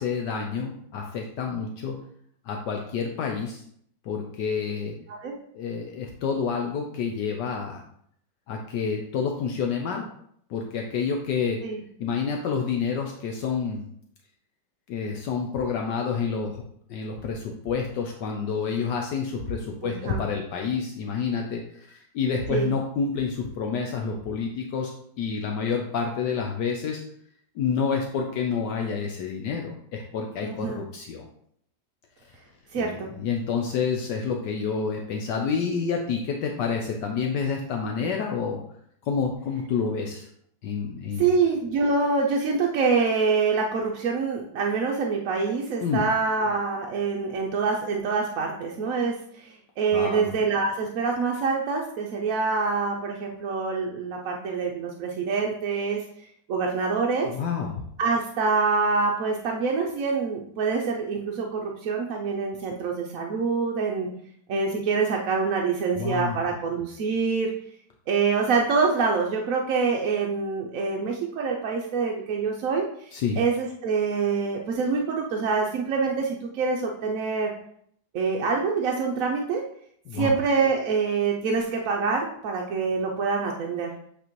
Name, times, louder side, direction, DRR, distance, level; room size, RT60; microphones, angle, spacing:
voice 1, 0.0-2.0 2.4-3.6 4.0-4.9 5.5-7.8 8.5-10.1 10.5-11.6 12.0-13.8 14.9-16.6 16.9-27.0 27.5-31.3 32.7-38.6 39.0-40.3 40.6-41.3 45.8-46.0 49.9-50.3 57.3-57.8 65.9-66.4 73.1-73.4 80.1-80.3, left 5 dB, 75° left, 2 dB, 1.3 m, -28 dB
voice 2, 19.8-20.2 22.5-22.7 30.4-30.8 32.7-33.1 41.2-56.0 56.5-57.3 58.0-64.1 64.5-67.5 68.1-72.8 73.4-77.5 78.1-79.6 80.1-83.9, right 4 dB, 65° right, 0 dB, 0.9 m, -25 dB
8.1 x 4.3 x 3.1 m, 0.67 s
omnidirectional pair, 2.0 m